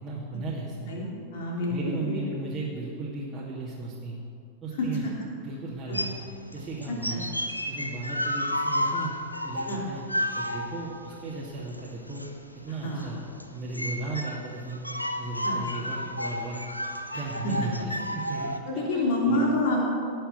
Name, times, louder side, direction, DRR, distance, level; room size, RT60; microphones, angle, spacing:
voice 1, 0.0-0.9 1.7-4.2 4.6-5.1 5.4-6.3 6.5-7.3 7.7-9.1 9.4-10.0 10.3-12.2 12.6-13.2 13.5-14.8 15.2-16.6 17.1-19.4, right 3 dB, 15° right, -8 dB, 2.5 m, -36 dB
voice 2, 0.9-2.2 4.8-4.9 5.9-6.0 7.1-7.2 9.7-9.9 12.8-13.1 15.4-15.6 17.1-17.7 18.7-19.9, left 1 dB, 50° left, -3 dB, 3.3 m, -28 dB
sound 1, 5.9-18.6, equal, 90° left, 0.8 m, -32 dB
18.5 x 6.9 x 6.8 m, 2.4 s
figure-of-eight pair, 90°, 0 cm